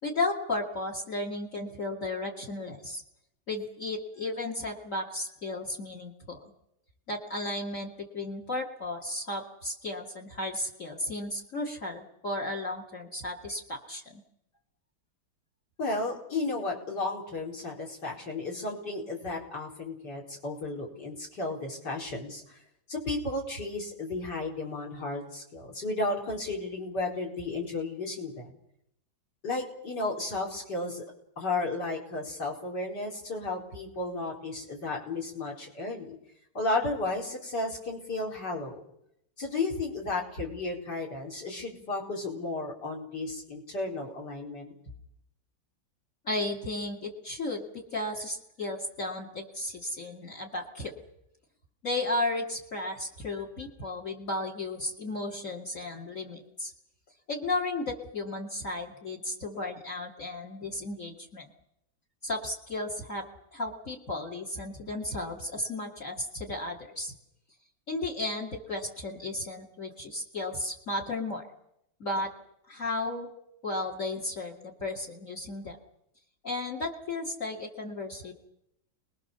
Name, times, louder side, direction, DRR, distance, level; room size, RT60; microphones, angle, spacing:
voice 1, 0.0-3.0 3.5-6.4 7.1-14.2 46.2-50.9 51.8-56.7 57.3-61.5 62.2-63.3 63.5-67.1 67.9-71.5 72.0-72.3 72.7-73.3 73.6-75.8 76.4-78.3, left 2 dB, 40° left, 4 dB, 2.8 m, -34 dB
voice 2, 15.8-22.6 22.9-28.5 29.4-31.0 31.4-36.2 36.6-38.8 39.4-44.7, left 2 dB, 55° left, -1 dB, 5.4 m, -33 dB
29.5 x 21.0 x 6.9 m, 0.79 s
omnidirectional pair, 2.1 m